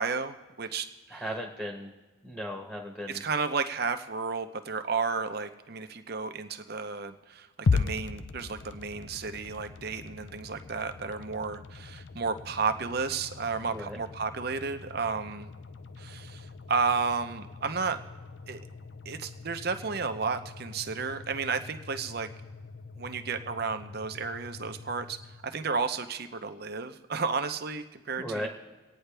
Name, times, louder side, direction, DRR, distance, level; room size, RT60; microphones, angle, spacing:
voice 1, 0.0-1.2 3.1-15.5 16.0-18.0 18.5-18.6 19.0-22.3 23.0-25.2 25.4-28.5, right 5 dB, 50° right, 8 dB, 0.7 m, -32 dB
voice 2, 1.1-1.9 2.2-3.2 13.7-14.0 28.2-28.5, equal, 10° left, 1 dB, 1.2 m, -36 dB
sound 1, 7.7-25.9, left 4 dB, 60° left, 0.5 m, -38 dB
25.0 x 9.3 x 3.4 m, 1.3 s
head